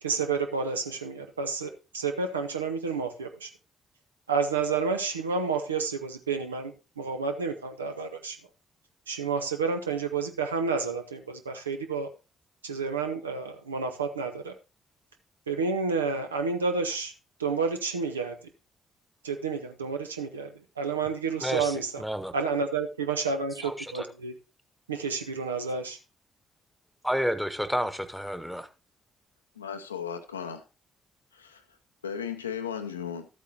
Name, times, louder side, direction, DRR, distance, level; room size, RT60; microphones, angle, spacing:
voice 1, 0.0-3.5 4.3-8.4 9.1-12.1 12.6-14.5 15.5-17.1 17.4-18.4 19.2-22.0 22.3-24.3 24.9-26.0, right 5 dB, 85° right, 0.7 m, -30 dB
voice 2, 21.4-22.3 23.6-24.1 27.0-28.7, equal, ahead, 1.2 m, -30 dB
voice 3, 29.6-30.6 31.3-31.6 32.0-33.3, left 7 dB, 85° left, 0.5 m, -35 dB
12.5 x 8.3 x 2.8 m
figure-of-eight pair, 40°, 0 cm